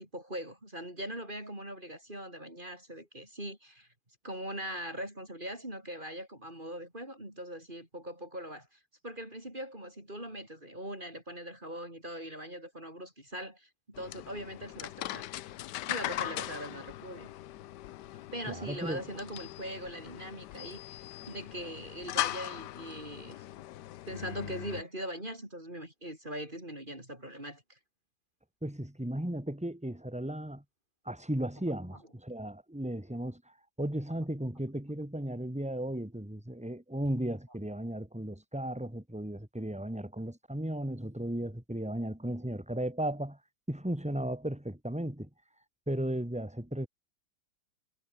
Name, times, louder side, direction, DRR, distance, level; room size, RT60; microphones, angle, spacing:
voice 1, 0.0-3.9 4.2-15.3 15.9-17.3 18.3-23.4 24.1-27.8, equal, 25° right, 6.9 m, -41 dB
sound 1, 13.9-24.8, left 14 dB, 70° left, 1.2 m, -40 dB
voice 2, 18.5-19.0 28.6-30.6 31.0-33.4 33.8-43.4 43.7-45.3 45.9-46.9, right 1 dB, 5° right, 3.1 m, -35 dB
omnidirectional pair, 2.0 m